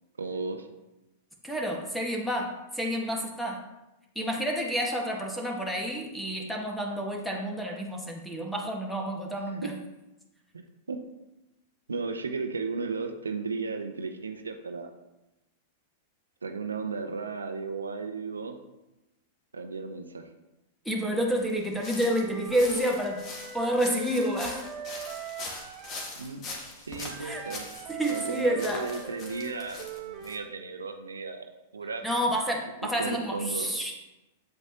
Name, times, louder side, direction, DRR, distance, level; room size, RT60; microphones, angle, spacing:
voice 1, 0.2-0.7 9.6-9.7 10.5-11.0 11.9-14.9 16.4-18.6 19.5-20.2 26.2-26.4 26.8-27.7 28.1-31.4 31.7-32.0 33.0-33.7, right 4 dB, 85° right, 6 dB, 0.7 m, -35 dB
voice 2, 1.4-3.6 4.1-9.7 20.8-23.3 23.5-24.7 27.2-27.4 27.9-28.9 32.0-33.9, equal, 5° left, -1 dB, 1.6 m, -29 dB
sound 1, 21.4-30.4, left 3 dB, 35° left, 1.8 m, -42 dB
Wind instrument woodwind instrument, 22.0-26.1 27.0-30.4, right 6 dB, 40° right, 1.2 m, -41 dB
7.9 x 7.8 x 2.9 m, 0.99 s
hypercardioid pair, 105°, 0 cm